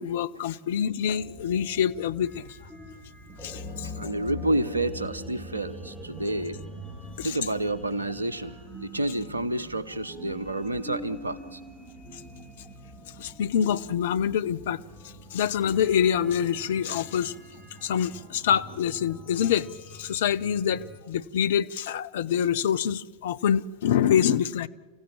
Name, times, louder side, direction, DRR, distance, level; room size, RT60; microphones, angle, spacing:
voice 1, 0.0-2.6 3.4-4.1 7.2-7.4 13.2-14.8 15.3-17.3 17.8-19.7 19.9-24.7, left 9 dB, 55° left, 0.8 m, -26 dB
sound 1, 1.1-21.0, equal, 15° right, 3.9 m, -43 dB
voice 2, 3.8-6.6 7.2-11.6, right 1 dB, 80° right, 1.0 m, -29 dB
30.0 x 16.0 x 7.5 m
figure-of-eight pair, 90°, 0 cm